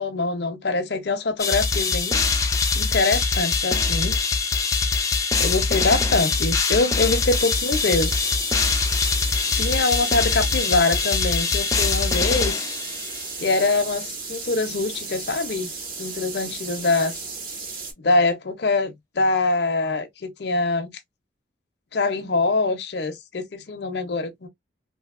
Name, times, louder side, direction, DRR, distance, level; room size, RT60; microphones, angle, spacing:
voice 1, 0.0-4.2 5.4-8.2 9.6-12.6 13.4-15.7 16.0-17.2 18.0-21.0 21.9-24.5, left 3 dB, 60° left, 0.6 m, -24 dB
sound 1, 1.4-13.3, left 4 dB, 15° left, 0.3 m, -23 dB
sound 2, 7.3-17.9, right 4 dB, 50° right, 0.9 m, -34 dB
2.7 x 2.7 x 2.3 m
head